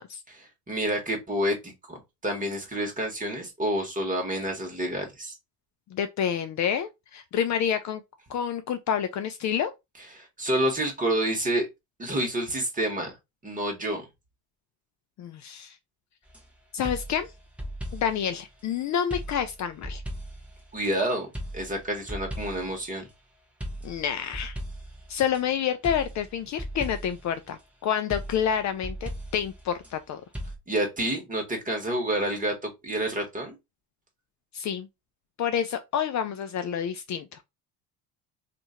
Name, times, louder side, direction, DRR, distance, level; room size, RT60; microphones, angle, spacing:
voice 1, 0.3-2.0 2.2-5.3 10.1-11.7 12.0-13.1 13.4-14.0 20.7-21.3 21.5-23.1 30.7-33.5, right 1 dB, 20° right, 1.4 m, -28 dB
voice 2, 5.9-8.0 8.3-9.7 15.2-15.8 16.7-17.3 17.9-20.0 23.8-24.6 25.1-30.2 34.5-34.9 35.4-37.3, left 8 dB, 45° left, 0.4 m, -28 dB
sound 1, 16.3-16.4 16.8-18.3 19.1-20.9 21.3-22.8 23.6-25.4 25.8-27.3 28.1-29.9 30.3-30.5, equal, 5° right, 0.9 m, -37 dB
2.7 x 2.6 x 4.2 m
cardioid pair, 115°, 41 cm